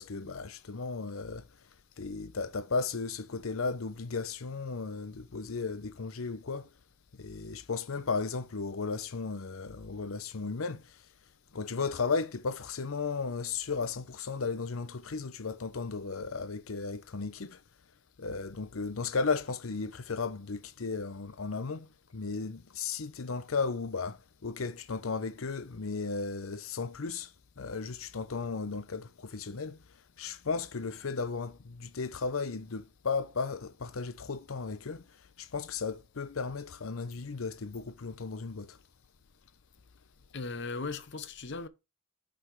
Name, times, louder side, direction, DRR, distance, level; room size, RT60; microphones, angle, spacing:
voice 1, 0.0-1.4 2.0-6.7 7.1-11.0 11.5-17.6 18.2-29.8 30.2-38.8, left 4 dB, 85° left, 0.7 m, -35 dB
voice 2, 40.3-41.7, left 3 dB, 60° left, 0.8 m, -37 dB
5.9 x 5.0 x 6.1 m
head